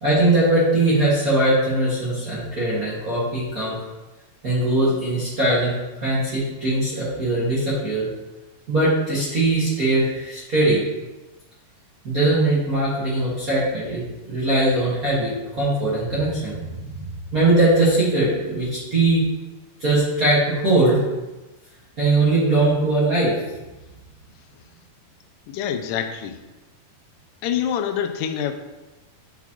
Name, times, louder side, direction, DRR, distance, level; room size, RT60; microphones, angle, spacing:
voice 1, 0.0-3.7 4.4-8.1 8.7-10.8 12.0-19.2 19.8-21.0 22.0-23.3, right 2 dB, 40° right, -9 dB, 1.3 m, -20 dB
voice 2, 25.5-26.4 27.4-28.5, left 9 dB, 85° left, 8 dB, 2.2 m, -26 dB
9.0 x 4.1 x 2.9 m, 1.1 s
omnidirectional pair, 3.8 m